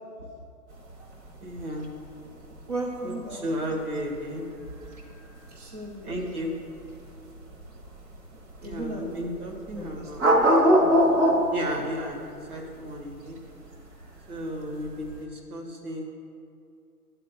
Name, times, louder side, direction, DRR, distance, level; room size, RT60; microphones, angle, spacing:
sound 1, 0.7-15.2, equal, 45° right, 1.4 m, -25 dB
voice 1, 1.4-1.9 3.0-4.4 6.0-6.5 8.6-10.3 11.5-12.2 12.5-13.4 14.3-16.1, equal, 65° right, 0 dB, 1.9 m, -34 dB
voice 2, 2.5-3.4 5.5-6.4 8.3-9.1 9.7-10.1, right 2 dB, 25° right, -3 dB, 0.6 m, -36 dB
9.2 x 4.2 x 6.9 m, 2.5 s
hypercardioid pair, 145°, 47 cm